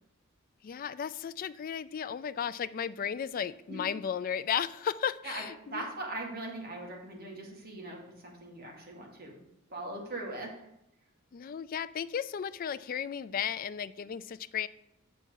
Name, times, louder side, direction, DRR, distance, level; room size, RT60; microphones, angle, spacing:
voice 1, 0.6-5.8 11.3-14.7, left 8 dB, 40° left, 14 dB, 0.3 m, -34 dB
voice 2, 5.7-9.4 9.7-10.7, right 2 dB, 50° right, 0 dB, 1.9 m, -40 dB
7.4 x 6.6 x 4.6 m, 0.80 s
head